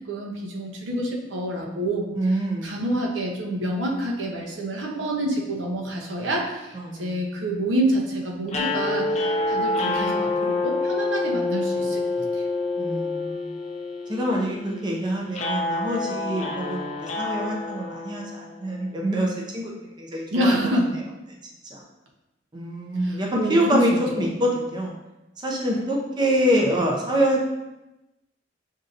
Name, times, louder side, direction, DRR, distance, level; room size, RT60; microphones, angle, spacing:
voice 1, 0.1-2.1 2.6-12.4 20.3-20.9 23.0-23.8 24.1-24.3, right 1 dB, 85° right, -1 dB, 0.8 m, -27 dB
voice 2, 2.1-2.8 6.7-7.2 12.8-13.5 14.1-19.7 20.0-20.6 21.7-21.8 22.5-24.9 25.4-27.4, equal, 25° right, -2 dB, 0.6 m, -25 dB
sound 1, 8.5-18.7, left 2 dB, 35° left, 0.5 m, -27 dB
6.3 x 2.7 x 2.5 m, 0.98 s
head